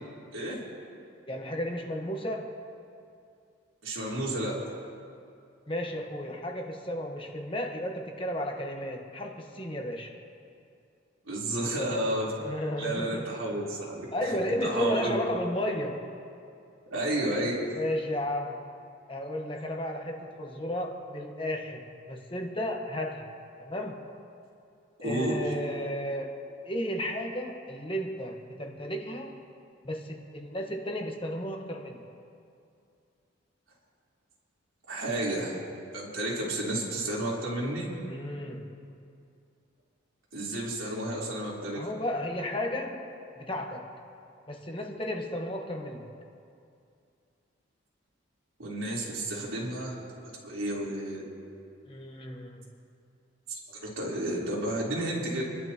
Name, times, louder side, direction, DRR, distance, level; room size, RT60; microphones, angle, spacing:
voice 1, 0.3-0.7 3.8-4.7 11.2-12.4 12.8-15.2 16.9-17.6 25.0-25.5 34.9-35.6 35.9-37.9 40.3-41.9 48.6-50.0 50.4-51.2 53.5-55.4, right 1 dB, 85° right, -5 dB, 3.9 m, -31 dB
voice 2, 1.3-2.5 5.7-10.1 12.4-13.3 14.1-16.1 17.7-18.7 19.1-23.3 23.6-24.0 25.0-29.4 29.8-32.0 38.1-38.8 41.7-43.9 44.5-46.1 51.9-52.7, left 1 dB, 25° left, 2 dB, 1.3 m, -33 dB
29.0 x 12.0 x 3.0 m, 2.5 s
head